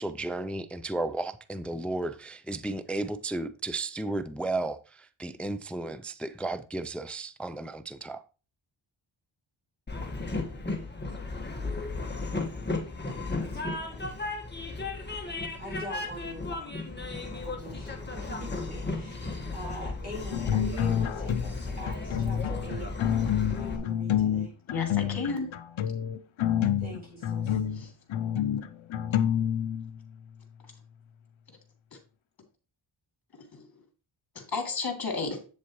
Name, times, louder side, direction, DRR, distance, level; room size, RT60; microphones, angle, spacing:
voice 1, 0.0-8.2, right 2 dB, 5° left, 0.3 m, -34 dB
Train, 9.9-23.8, left 3 dB, 20° left, 1.5 m, -35 dB
voice 2, 11.0-11.4 13.0-14.2 15.6-16.8 17.4-22.9 23.4-24.5 26.8-27.6, right 1 dB, 20° right, 4.1 m, -44 dB
sound 1, 20.3-21.6 21.9-30.0, left 9 dB, 75° left, 0.7 m, -28 dB
voice 3, 24.7-25.5 27.8-27.9 33.5-33.7 34.3-35.4, left 4 dB, 50° left, 2.7 m, -32 dB
8.2 x 7.2 x 3.0 m
wide cardioid pair, 95°, 47 cm